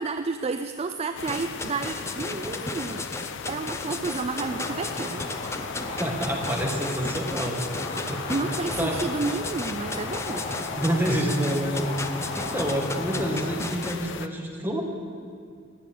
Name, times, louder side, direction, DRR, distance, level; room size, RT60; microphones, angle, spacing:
voice 1, 0.0-3.1 3.5-5.3 8.3-10.5, right 4 dB, 30° right, 9 dB, 0.4 m, -31 dB
sound 1, 1.1-14.3, left 7 dB, 60° left, 0.4 m, -37 dB
sound 2, 1.2-14.0, left 2 dB, 15° left, 0.7 m, -34 dB
sound 3, 4.4-13.5, left 1 dB, 45° left, 4.2 m, -36 dB
voice 2, 5.9-7.6 8.1-9.1 10.7-12.0 12.3-14.8, right 1 dB, 10° right, 0 dB, 1.7 m, -28 dB
18.5 x 6.9 x 8.4 m, 2.2 s
head